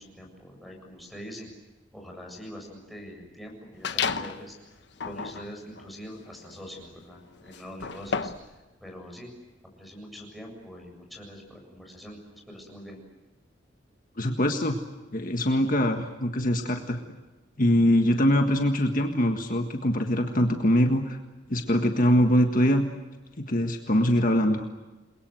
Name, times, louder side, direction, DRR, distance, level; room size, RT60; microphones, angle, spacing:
voice 1, 0.0-1.5 1.9-4.8 5.0-9.3 9.7-13.0, equal, ahead, 0 dB, 7.5 m, -44 dB
sound 1, 3.8-4.4 4.9-8.5, left 6 dB, 60° left, 1.1 m, -33 dB
voice 2, 14.2-14.8 15.1-17.1 17.6-21.2 21.5-22.8 23.5-24.6, equal, 45° left, 4 dB, 1.7 m, -23 dB
29.5 x 22.0 x 7.9 m, 1.2 s
head